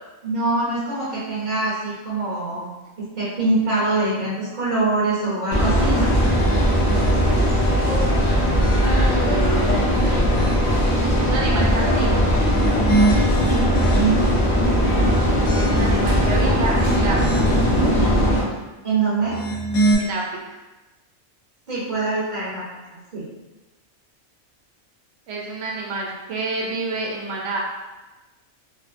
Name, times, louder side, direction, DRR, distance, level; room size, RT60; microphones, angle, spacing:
voice 1, 0.2-2.7 3.0-6.1 13.5-14.3 18.8-19.4 21.7-22.7 23.1-23.2, right 3 dB, 45° right, -9 dB, 0.7 m, -24 dB
sound 1, 5.5-18.4, equal, 45° left, 0.5 m, -19 dB
sound 2, 6.2-7.5 8.1-9.2 9.7-10.8 12.3-14.4 14.9-16.1 16.6-17.7 19.2-20.0, right 2 dB, 75° left, 1.0 m, -26 dB
voice 2, 7.2-7.5 7.8-7.9 9.1-10.2 11.2-12.4 15.5-17.2 20.0-20.6 25.3-27.6, right 3 dB, 70° right, -3 dB, 0.9 m, -29 dB
2.5 x 2.4 x 2.4 m, 1.1 s
omnidirectional pair, 1.3 m